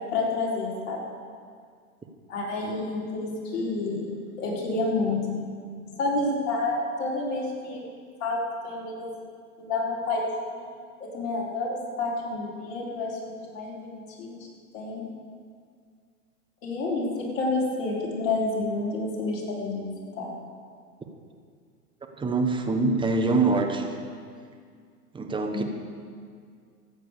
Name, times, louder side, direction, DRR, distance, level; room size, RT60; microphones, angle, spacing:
voice 1, 0.1-1.0 2.3-5.3 6.0-7.8 8.2-9.2 9.6-10.2 10.5-10.7 11.0-14.5 14.7-15.1 16.6-17.1 17.3-20.3 25.5-25.6, left 3 dB, 55° left, -4 dB, 4.3 m, -29 dB
voice 2, 22.2-24.0 25.1-25.6, right 3 dB, 10° right, 4 dB, 1.1 m, -24 dB
14.0 x 9.2 x 6.8 m, 2.1 s
hypercardioid pair, 120°, 46 cm